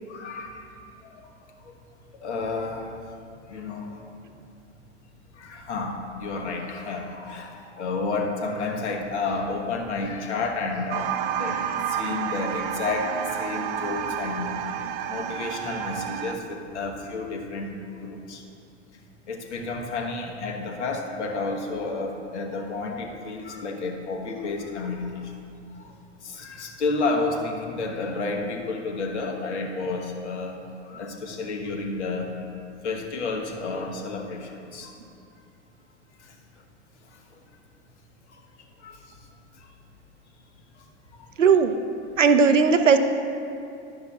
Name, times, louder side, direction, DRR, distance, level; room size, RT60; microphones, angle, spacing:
voice 1, 0.1-0.7 1.1-1.3 1.6-1.8 2.2-2.9 3.5-4.1 5.3-14.6 15.1-18.4 19.3-25.3 25.8-25.9 26.2-30.6 30.8-32.4 32.8-34.9 38.3-38.4 38.8-39.2 39.6-39.7 40.8-40.9, left 3 dB, 65° left, 3 dB, 1.3 m, -31 dB
sound 1, 10.9-16.4, right 9 dB, 50° right, 0.5 m, -30 dB
voice 2, 41.4-41.7 42.2-43.0, right 5 dB, 90° right, 8 dB, 0.7 m, -17 dB
11.0 x 10.0 x 2.4 m, 2.5 s
hypercardioid pair, 95°, 36 cm